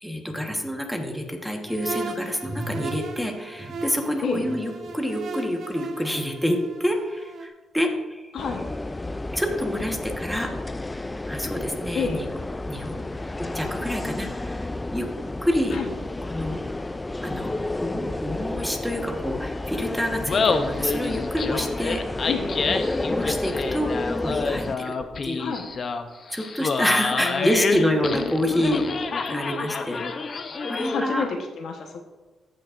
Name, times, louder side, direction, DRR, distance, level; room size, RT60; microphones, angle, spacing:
voice 1, 0.0-8.2 9.3-10.5 11.3-12.2 12.7-13.0 13.4-15.1 15.4-15.8 16.2-16.6 17.2-22.0 22.7-23.9 24.2-25.0 25.2-25.4 26.3-28.9 29.3-30.0 30.6-31.3, equal, ahead, 2 dB, 1.3 m, -27 dB
sound 1, 1.7-7.5, right 3 dB, 65° right, 1.0 m, -37 dB
sound 2, 8.4-24.8, left 2 dB, 15° left, 0.3 m, -31 dB
Laughter, 20.1-31.2, left 4 dB, 45° left, 0.7 m, -28 dB
voice 2, 22.2-22.6 25.4-25.7 27.2-28.3 30.8-32.0, left 5 dB, 70° left, 3 dB, 1.1 m, -29 dB
14.5 x 6.4 x 2.5 m, 1.2 s
cardioid pair, 90°, 0 cm